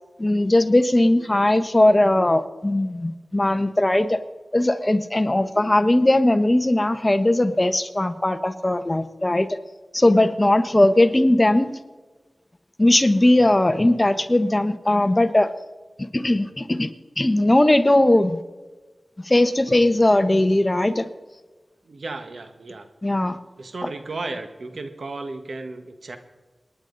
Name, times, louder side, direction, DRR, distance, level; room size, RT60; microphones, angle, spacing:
voice 1, 0.2-4.2 4.5-9.6 9.9-11.7 12.8-15.5 16.0-16.9 17.2-18.4 19.2-21.1 23.0-23.4, left 1 dB, 30° left, 10 dB, 1.2 m, -19 dB
voice 2, 21.8-22.9 23.6-26.2, right 3 dB, 80° right, 8 dB, 1.5 m, -34 dB
28.0 x 10.5 x 4.0 m, 1.3 s
wide cardioid pair, 50°, 0 cm